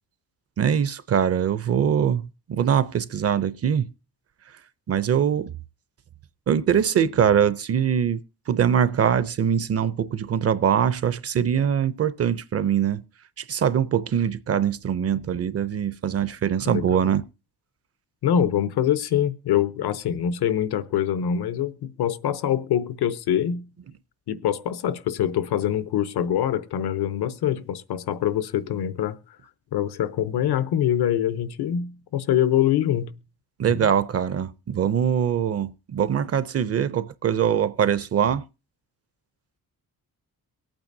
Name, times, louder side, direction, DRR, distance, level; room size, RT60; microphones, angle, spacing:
voice 1, 0.6-2.2 2.5-3.8 4.9-5.5 6.5-8.2 8.5-13.0 13.4-17.3 33.6-38.4, right 8 dB, 40° right, 0.5 m, -22 dB
voice 2, 16.6-17.1 18.2-23.6 24.3-29.2 29.7-33.2 33.7-33.9, left 10 dB, 85° left, 0.9 m, -24 dB
23.5 x 8.8 x 2.6 m
wide cardioid pair, 165°, 37 cm